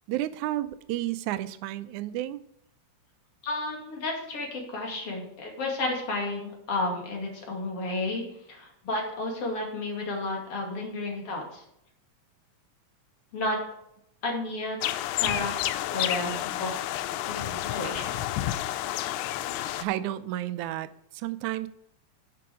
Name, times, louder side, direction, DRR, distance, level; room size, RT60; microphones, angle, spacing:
voice 1, 0.1-2.4 19.5-21.7, right 14 dB, 80° right, 14 dB, 2.0 m, -32 dB
voice 2, 3.4-11.6 13.3-13.6 14.2-14.8 15.1-15.5 15.9-16.7 17.3-18.2, left 2 dB, 50° left, 0 dB, 3.3 m, -32 dB
sound 1, 14.8-19.8, left 14 dB, 85° left, 2.1 m, -30 dB
11.0 x 7.0 x 4.8 m, 0.76 s
omnidirectional pair, 3.5 m